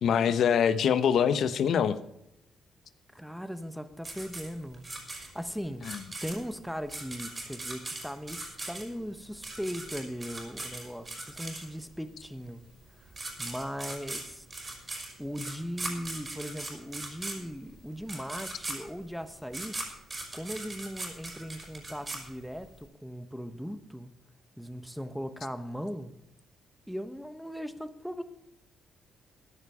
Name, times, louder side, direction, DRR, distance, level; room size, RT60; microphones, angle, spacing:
voice 1, 0.0-2.0 5.9-6.0, left 8 dB, 65° left, 13 dB, 0.9 m, -24 dB
voice 2, 3.1-4.8 5.3-5.9 6.2-12.6 13.4-14.5 15.2-19.8 20.3-24.1 24.6-26.1 26.9-28.2, equal, ahead, 11 dB, 1.2 m, -38 dB
sound 1, 4.0-12.0 12.8-12.9 13.1-22.8, right 2 dB, 25° right, 5.0 m, -39 dB
15.0 x 10.0 x 5.0 m, 0.84 s
cardioid pair, 90°, 0 cm